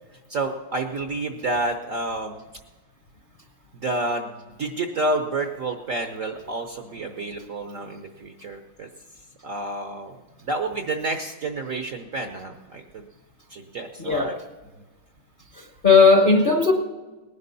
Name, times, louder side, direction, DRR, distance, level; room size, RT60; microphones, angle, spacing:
voice 1, 0.1-2.4 3.7-8.9 9.4-10.2 10.4-13.1 13.5-14.4, right 2 dB, 55° right, 5 dB, 0.9 m, -29 dB
voice 2, 14.0-14.4 15.5-16.7, left 4 dB, 35° left, 2 dB, 0.8 m, -17 dB
19.5 x 11.0 x 4.1 m, 1.2 s
omnidirectional pair, 2.3 m